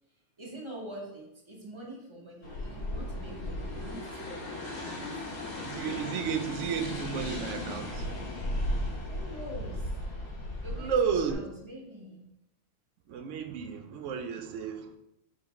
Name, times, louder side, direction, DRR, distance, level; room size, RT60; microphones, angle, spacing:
voice 1, 0.1-5.3 9.1-10.0 10.6-12.3, right 1 dB, 25° right, -2 dB, 0.8 m, -45 dB
sound 1, 2.4-11.3, left 1 dB, 90° left, 1.4 m, -36 dB
voice 2, 5.7-8.1 10.8-11.4 13.1-14.9, right 6 dB, 75° right, 6 dB, 0.9 m, -32 dB
5.1 x 3.1 x 3.0 m, 0.87 s
omnidirectional pair, 1.3 m